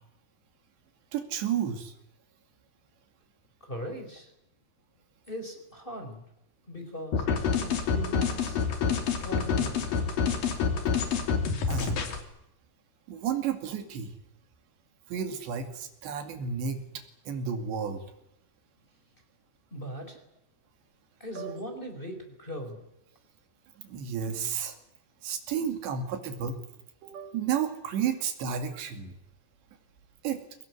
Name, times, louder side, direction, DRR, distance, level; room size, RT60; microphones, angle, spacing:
voice 1, 1.1-1.9 11.7-12.0 13.1-14.2 15.1-16.8 17.3-18.0 21.4-21.6 23.8-24.8 25.2-26.6 27.0-29.2 30.2-30.4, right 7 dB, 75° right, 7 dB, 4.6 m, -32 dB
voice 2, 3.6-4.3 5.3-6.2 6.7-7.3 7.6-8.6 9.2-10.1 19.7-20.2 21.2-22.8, equal, 10° left, 4 dB, 4.4 m, -39 dB
sound 1, 7.1-12.2, left 6 dB, 55° left, 4.4 m, -27 dB
24.0 x 19.0 x 9.6 m, 0.82 s
omnidirectional pair, 5.1 m